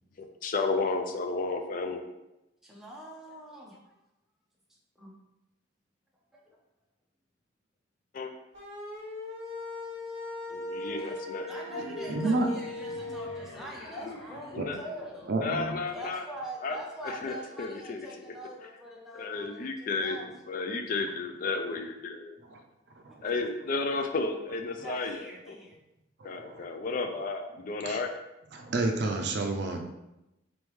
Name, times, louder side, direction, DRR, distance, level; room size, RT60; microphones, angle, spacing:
voice 1, 0.2-2.0 8.1-8.3 10.5-11.5 14.0-14.1 14.5-14.8 15.4-16.2 16.6-16.8 17.0-18.1 19.1-20.2 20.5-22.4 23.2-25.6 26.2-28.1, left 3 dB, 45° left, 6 dB, 0.3 m, -32 dB
voice 2, 2.6-3.9 5.0-5.1 6.3-6.6 11.0-11.1 11.5-15.3 15.6-20.3 24.8-25.8, equal, ahead, -4 dB, 0.7 m, -44 dB
sound 1, 8.5-13.4, left 2 dB, 35° right, 1.5 m, -38 dB
sound 2, 11.6-16.1, left 1 dB, 80° left, 0.7 m, -46 dB
voice 3, 12.1-12.5 14.6-14.7 15.3-15.7 22.5-22.6 23.0-23.3 26.2-26.7 27.8-28.0 28.5-29.8, right 2 dB, 60° right, 3 dB, 0.5 m, -30 dB
3.9 x 3.5 x 3.1 m, 0.92 s
head